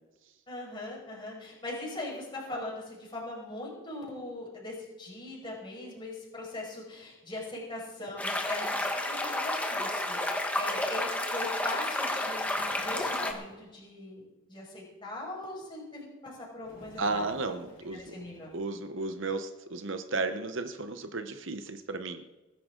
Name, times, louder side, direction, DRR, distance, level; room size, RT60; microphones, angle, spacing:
voice 1, 0.5-10.2 10.6-14.2 14.5-17.3 17.9-18.5, left 2 dB, 20° left, -4 dB, 5.5 m, -40 dB
sound 1, 8.2-13.3, left 1 dB, 5° left, 1.3 m, -31 dB
Bird, 12.4-13.8 16.6-19.1, equal, 40° left, 4.5 m, -54 dB
voice 2, 17.0-18.2 18.5-22.2, right 3 dB, 60° right, 8 dB, 0.9 m, -34 dB
20.5 x 11.5 x 3.8 m, 1.1 s
head